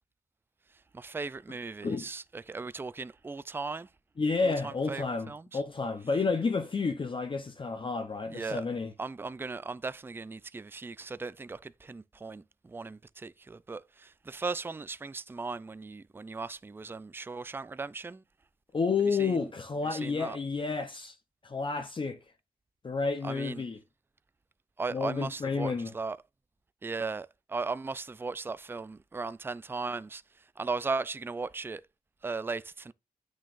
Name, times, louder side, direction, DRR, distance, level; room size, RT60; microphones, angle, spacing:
voice 1, 0.9-3.9 4.4-5.6 8.3-8.6 9.0-18.2 19.2-19.4 19.9-20.4 23.2-23.6 24.8-26.2 26.8-31.8 32.2-32.9, right 4 dB, 15° right, 0.3 m, -37 dB
voice 2, 4.2-8.9 18.7-21.2 21.4-22.2 22.8-23.8 24.9-25.9, left 4 dB, 35° left, 0.7 m, -30 dB
10.5 x 6.3 x 2.5 m
wide cardioid pair, 145°, 15 cm